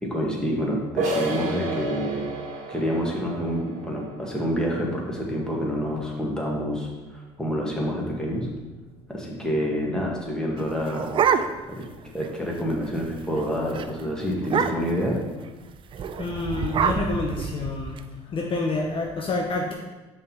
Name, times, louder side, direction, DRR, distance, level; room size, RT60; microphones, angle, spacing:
voice 1, 0.0-2.3 2.7-8.5 9.1-11.0 11.7-11.9 12.1-15.2, equal, 5° left, -3 dB, 1.7 m, -27 dB
sound 1, 1.0-6.4, right 2 dB, 60° right, 1.4 m, -33 dB
sound 2, 10.6-11.8 12.2-12.3 12.6-12.9 13.2-13.4 13.7-13.9 14.4-15.0 15.9-18.0, right 7 dB, 40° right, 0.4 m, -26 dB
voice 2, 16.2-18.0 18.3-19.7, left 3 dB, 40° left, 0 dB, 0.7 m, -28 dB
5.5 x 3.7 x 5.5 m, 1.2 s
supercardioid pair, 80°, 13 cm